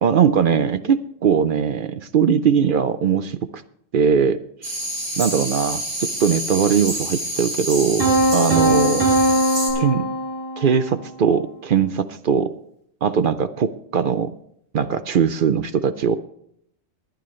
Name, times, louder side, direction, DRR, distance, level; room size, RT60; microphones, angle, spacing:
voice 1, 0.0-3.4 3.9-4.4 4.6-4.7 5.2-9.1 9.8-10.1 10.6-12.5 13.0-14.3 14.7-16.2, right 7 dB, 55° right, 12 dB, 0.6 m, -20 dB
sound 1, 4.6-9.7, right 1 dB, 75° right, 4.2 m, -28 dB
sound 2, 8.0-10.9, right 1 dB, 20° right, 4.9 m, -20 dB
22.5 x 9.2 x 3.2 m, 0.70 s
omnidirectional pair, 1.3 m